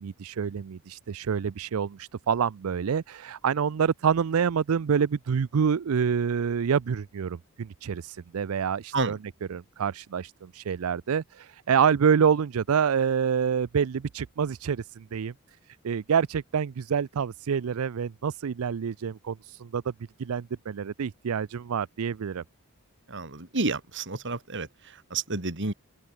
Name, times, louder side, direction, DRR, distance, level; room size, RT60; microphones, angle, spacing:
voice 1, 0.0-9.2 9.5-15.3 15.8-19.9 20.2-22.4, right 7 dB, 75° right, 0.4 m, -27 dB
voice 2, 23.1-25.7, right 3 dB, 60° right, 2.6 m, -30 dB
head